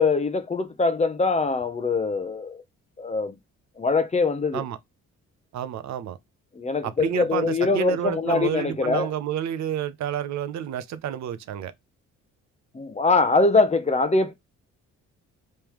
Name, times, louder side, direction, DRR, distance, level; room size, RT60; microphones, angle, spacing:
voice 1, 0.0-2.6 3.0-3.4 3.8-4.6 6.5-9.1 12.7-14.3, left 3 dB, 25° left, 0.7 m, -23 dB
voice 2, 5.5-6.2 6.8-11.7, right 10 dB, 65° right, 0.6 m, -30 dB
3.4 x 3.2 x 2.9 m
cardioid pair, 90°, 30 cm